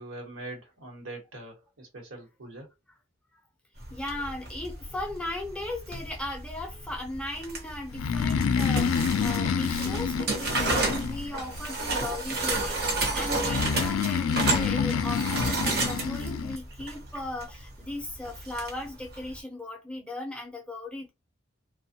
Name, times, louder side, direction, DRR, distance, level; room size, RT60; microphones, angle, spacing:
voice 1, 0.0-2.7, right 2 dB, 75° right, 1.1 m, -42 dB
sound 1, 3.8-19.4, right 2 dB, 50° right, 0.8 m, -32 dB
voice 2, 3.9-21.1, left 1 dB, 5° left, 0.5 m, -37 dB
Breathing, 7.9-11.6 13.4-16.6, left 6 dB, 85° left, 0.3 m, -27 dB
2.5 x 2.2 x 2.7 m
head